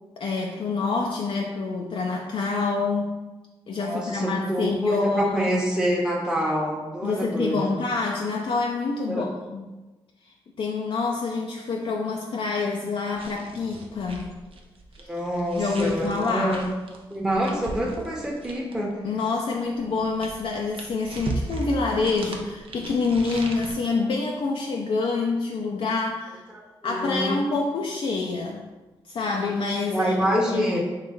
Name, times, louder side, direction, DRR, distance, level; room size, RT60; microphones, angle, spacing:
voice 1, 0.2-3.2 3.7-5.3 7.0-9.7 10.2-14.4 15.0-15.1 15.5-16.7 19.0-26.4 26.8-28.6 29.1-30.2 30.5-30.8, left 4 dB, 55° left, -1 dB, 0.4 m, -27 dB
voice 2, 3.8-7.7 9.1-9.2 15.1-16.7 17.1-18.9 26.8-27.4 29.9-30.8, equal, 5° right, -2 dB, 0.8 m, -26 dB
sound 1, 13.2-18.9 19.8-23.7, right 2 dB, 60° right, 0.5 m, -37 dB
3.1 x 2.6 x 3.4 m, 1.2 s
supercardioid pair, 40°, 10 cm